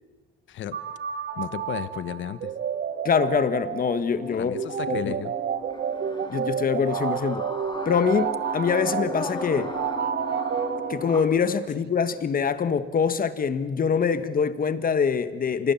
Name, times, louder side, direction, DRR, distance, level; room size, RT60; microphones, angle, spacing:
sound 1, 0.7-11.5, right 8 dB, 55° right, 1.3 m, -30 dB
voice 1, 1.4-2.5 4.3-5.3, left 10 dB, 70° left, 1.2 m, -33 dB
voice 2, 3.0-4.6 4.9-5.2 6.3-7.5 7.8-9.7 10.9-15.7, left 6 dB, 45° left, 1.6 m, -24 dB
sound 2, 4.1-11.2, left 3 dB, 20° left, 3.4 m, -37 dB
26.5 x 19.5 x 7.2 m
cardioid pair, 90°, 20 cm